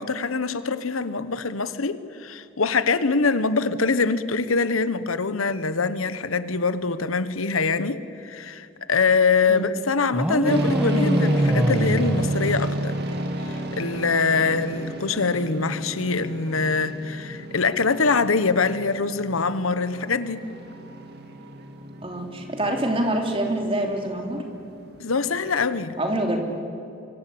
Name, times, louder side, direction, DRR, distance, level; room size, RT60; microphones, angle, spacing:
voice 1, 0.0-13.0 13.5-20.5 25.0-26.0, left 4 dB, 90° left, 1.1 m, -24 dB
sound 1, 10.1-13.3, equal, 5° right, 1.0 m, -26 dB
sound 2, 10.4-25.9, right 1 dB, 50° right, 2.5 m, -31 dB
voice 2, 22.0-24.4 26.0-26.4, right 1 dB, 25° right, 3.1 m, -25 dB
25.5 x 24.5 x 8.6 m
head